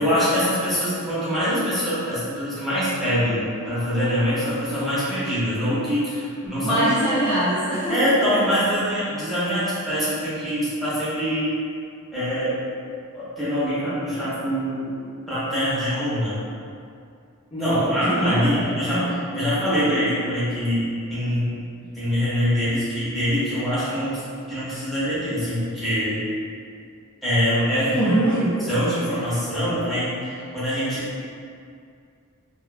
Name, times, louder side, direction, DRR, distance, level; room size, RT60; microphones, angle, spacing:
voice 1, 0.0-6.8 7.9-11.6 12.1-12.6 13.1-14.9 15.3-16.4 17.6-21.6 21.9-24.2 24.5-26.2 27.2-28.1 28.7-31.2, equal, ahead, -13 dB, 0.7 m, -24 dB
voice 2, 6.4-8.0 8.4-8.5 17.5-19.2 27.9-28.6, right 1 dB, 25° left, -12 dB, 0.4 m, -23 dB
2.4 x 2.2 x 2.4 m, 2.4 s
head